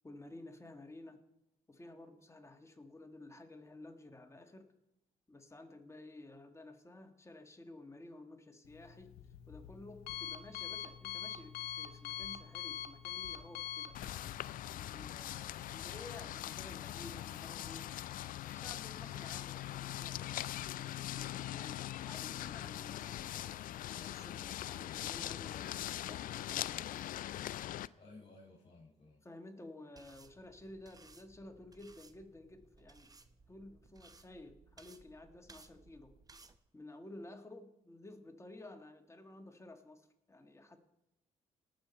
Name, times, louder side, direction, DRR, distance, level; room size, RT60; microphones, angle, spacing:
voice 1, 0.0-1.2 1.7-4.7 5.3-9.1 9.5-14.0 14.7-17.9 18.4-23.7 24.0-27.1 29.2-33.1 33.5-36.1 36.7-40.8, left 2 dB, 20° left, 5 dB, 1.7 m, -53 dB
Alarm, 8.6-15.0, left 11 dB, 85° left, 0.8 m, -44 dB
sound 1, 13.9-27.9, left 13 dB, 65° left, 0.4 m, -41 dB
voice 2, 27.6-29.2, left 2 dB, 40° left, -1 dB, 5.5 m, -58 dB
sound 2, 30.0-36.6, right 3 dB, 25° right, 0.9 m, -61 dB
18.5 x 6.8 x 4.4 m, 0.86 s
supercardioid pair, 60°, 15 cm